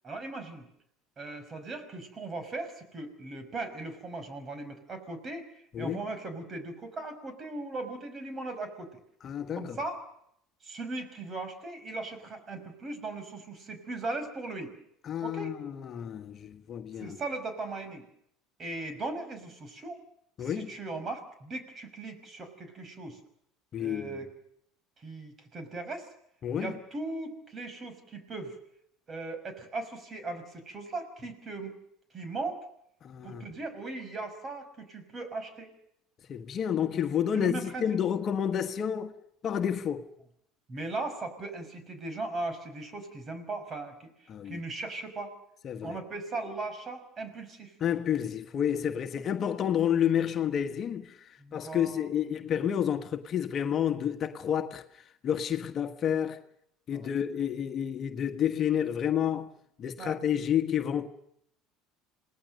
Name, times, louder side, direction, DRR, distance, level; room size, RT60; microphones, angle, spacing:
voice 1, 0.0-0.7 1.2-9.0 9.5-10.0 10.6-14.7 15.2-15.5 17.0-18.1 18.6-20.0 20.4-23.2 23.8-24.3 25.0-26.1 26.5-28.6 29.1-31.7 32.1-32.6 33.2-35.7 37.3-37.9 40.7-45.3 45.8-47.7 51.4-52.4 56.9-57.1 60.0-60.2, right 2 dB, 35° right, 5.9 m, -38 dB
voice 2, 9.2-9.8 15.0-17.2 20.4-20.7 23.7-24.2 26.4-26.8 33.0-33.4 36.3-39.1 39.4-40.1 44.3-44.6 45.6-46.0 47.8-54.8 55.2-56.4 56.9-59.5 59.8-61.1, left 9 dB, 45° left, 1.5 m, -30 dB
27.5 x 19.5 x 6.7 m
supercardioid pair, 90°, 0 cm